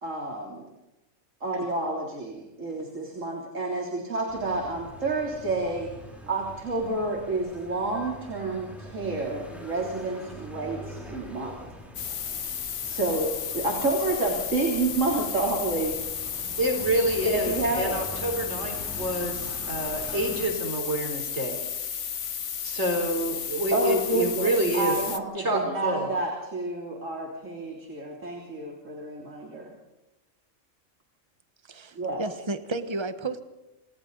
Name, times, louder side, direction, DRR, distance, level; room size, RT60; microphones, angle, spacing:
voice 1, 0.0-0.6 1.4-5.9 6.3-11.6 12.8-16.0 16.5-16.6 17.2-18.0 23.7-29.7 32.0-32.2, right 2 dB, 80° right, 0 dB, 4.0 m, -29 dB
sound 1, 4.3-20.5, equal, ahead, 7.7 m, -44 dB
sound 2, 11.9-25.2, left 8 dB, 70° left, 1.4 m, -33 dB
voice 2, 16.6-21.6 22.6-24.9 25.4-26.1, right 1 dB, 60° right, 2 dB, 4.2 m, -28 dB
voice 3, 31.6-33.4, right 3 dB, 20° right, 9 dB, 1.4 m, -32 dB
28.5 x 27.5 x 4.1 m, 1.0 s
omnidirectional pair, 1.3 m